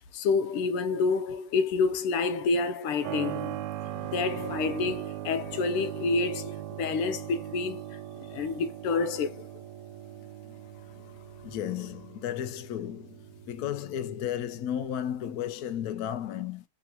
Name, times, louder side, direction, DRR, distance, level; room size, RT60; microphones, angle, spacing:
voice 1, 0.1-3.7 4.1-9.5, left 4 dB, 85° left, 1.6 m, -28 dB
Keyboard (musical), 3.0-15.4, right 12 dB, 80° right, 1.5 m, -40 dB
voice 2, 3.9-4.4 10.4-16.6, left 10 dB, 65° left, 0.9 m, -35 dB
3.9 x 2.5 x 4.3 m
omnidirectional pair, 2.4 m